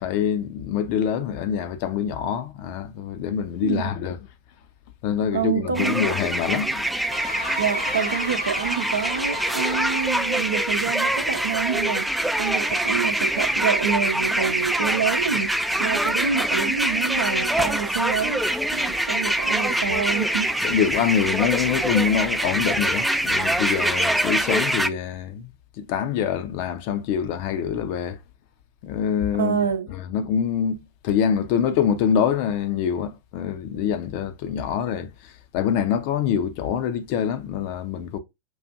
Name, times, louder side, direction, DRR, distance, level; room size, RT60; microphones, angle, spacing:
voice 1, 0.0-4.2 5.0-6.9 19.8-19.9 20.6-25.5 25.8-28.2 28.8-29.6 29.9-38.2, left 8 dB, 45° left, 0.5 m, -25 dB
voice 2, 5.3-6.0 7.6-12.1 12.4-15.5 15.8-18.4 18.7-20.8 29.4-29.9, right 7 dB, 70° right, 0.7 m, -27 dB
sound 1, 5.7-24.9, right 1 dB, 5° right, 0.3 m, -24 dB
sound 2, 7.1-10.4, left 1 dB, 80° left, 0.9 m, -34 dB
6.2 x 2.5 x 2.5 m
figure-of-eight pair, 90°, 0 cm